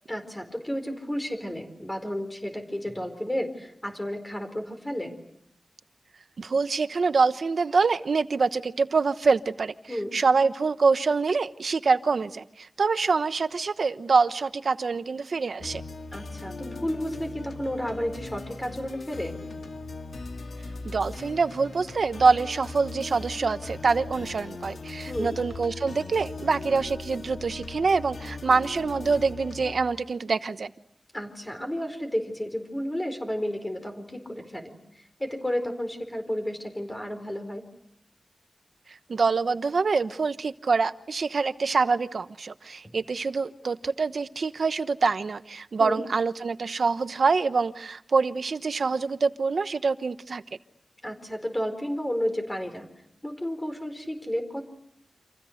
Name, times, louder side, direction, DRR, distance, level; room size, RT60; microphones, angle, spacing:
voice 1, 0.1-5.2 9.9-10.1 16.1-19.4 25.1-25.4 31.1-37.6 45.8-46.0 51.0-52.9 53.2-54.6, equal, 15° left, 6 dB, 4.5 m, -32 dB
voice 2, 6.4-15.8 20.8-30.7 38.9-50.4, right 4 dB, 75° right, 12 dB, 1.0 m, -25 dB
sound 1, 15.6-29.7, left 3 dB, 80° left, 2.2 m, -39 dB
30.0 x 27.0 x 6.6 m, 0.74 s
wide cardioid pair, 100°, 0 cm